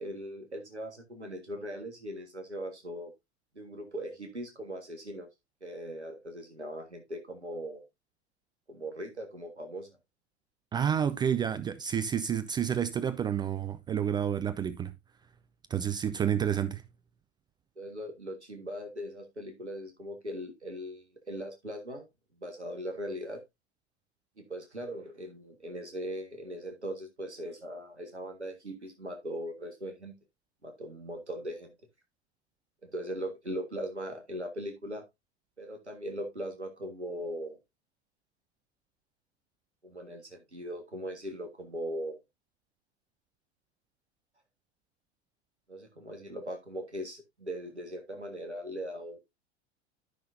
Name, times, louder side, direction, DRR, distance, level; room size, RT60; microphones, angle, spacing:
voice 1, 0.0-3.1 3.5-5.3 5.6-7.8 8.7-9.9 17.8-22.0 22.4-23.4 24.4-30.1 30.6-31.7 32.8-35.0 35.6-37.6 39.8-42.2 45.7-49.2, equal, 85° right, 1.6 m, -39 dB
voice 2, 10.7-14.9 15.7-16.8, right 8 dB, 15° right, 0.4 m, -29 dB
13.0 x 5.6 x 2.6 m
figure-of-eight pair, 85°, 33 cm